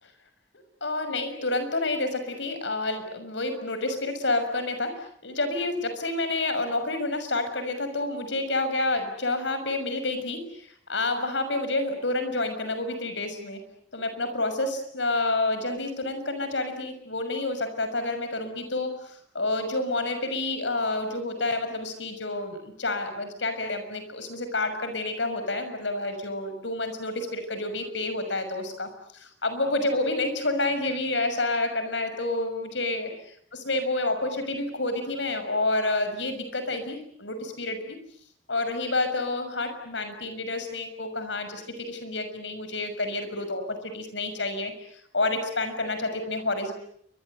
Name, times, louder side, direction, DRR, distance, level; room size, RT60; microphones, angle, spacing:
voice 1, 0.8-13.6 13.9-33.1 33.6-38.0 38.5-44.7 45.1-46.7, left 2 dB, 80° left, 9 dB, 6.3 m, -29 dB
29.0 x 24.5 x 8.0 m, 0.67 s
head